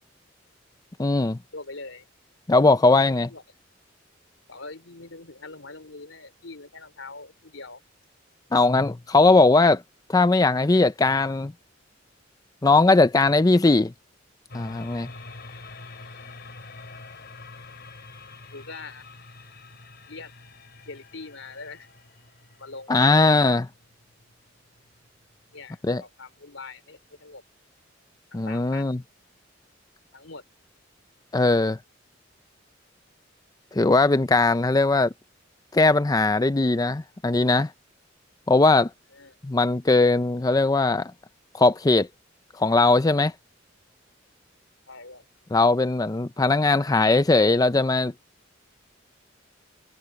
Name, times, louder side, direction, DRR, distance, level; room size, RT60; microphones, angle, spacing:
voice 1, 1.0-1.4 2.5-3.3 8.5-9.8 10.1-11.5 12.6-13.9 14.5-15.1 22.9-23.7 25.8-26.0 28.3-29.0 31.3-31.8 33.7-35.1 35.7-37.7 38.5-38.9 39.4-41.1 41.5-42.1 42.6-43.3 45.5-48.1, left 3 dB, 20° left, 0.5 m, -19 dB
voice 2, 1.5-2.1 3.3-3.4 4.5-7.8 18.5-19.1 20.1-20.3 20.9-21.9 22.6-23.4 25.5-27.4 28.3-29.0 30.1-30.4 39.1-39.4 44.9-45.3, left 3 dB, 85° left, 3.6 m, -42 dB
sound 1, 14.5-25.6, left 3 dB, 55° left, 2.6 m, -46 dB
head